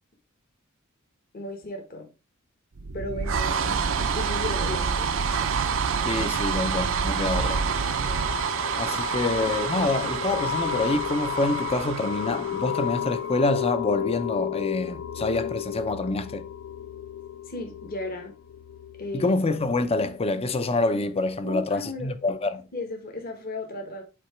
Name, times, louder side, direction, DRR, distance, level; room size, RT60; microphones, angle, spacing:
voice 1, 1.3-2.1 2.9-5.1 17.5-18.3 19.0-19.4 21.4-22.1 22.7-24.0, left 2 dB, 45° left, 1.4 m, -35 dB
sound 1, 2.7-13.3, right 6 dB, 65° right, 0.6 m, -28 dB
voice 2, 6.0-7.6 8.8-16.5 19.1-22.6, left 2 dB, 30° left, 0.6 m, -26 dB
sound 2, 6.4-20.5, left 10 dB, 75° left, 0.4 m, -34 dB
8.4 x 2.9 x 4.4 m
head